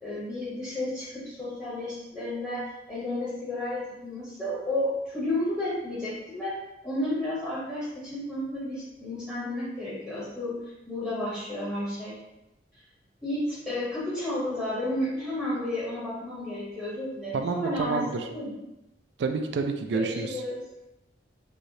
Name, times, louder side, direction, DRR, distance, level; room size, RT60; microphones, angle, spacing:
voice 1, 0.0-10.6 10.9-12.2 13.2-18.6 19.9-20.6, left 1 dB, 5° left, -10 dB, 0.7 m, -32 dB
voice 2, 17.3-18.2 19.2-20.4, right 4 dB, 65° right, 6 dB, 0.3 m, -29 dB
3.1 x 2.7 x 2.7 m, 0.95 s
head